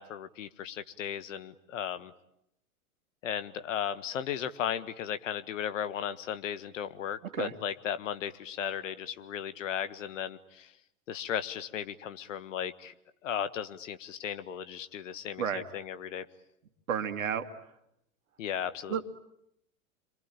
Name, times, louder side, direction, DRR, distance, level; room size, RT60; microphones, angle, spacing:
voice 1, 0.0-2.1 3.2-10.7 11.1-12.9 13.2-16.3 18.4-19.0, left 9 dB, 60° left, 12 dB, 1.6 m, -36 dB
voice 2, 16.9-17.5 18.9-19.1, right 8 dB, 65° right, 8 dB, 2.4 m, -31 dB
28.0 x 24.5 x 8.8 m, 0.79 s
figure-of-eight pair, 95°, 43 cm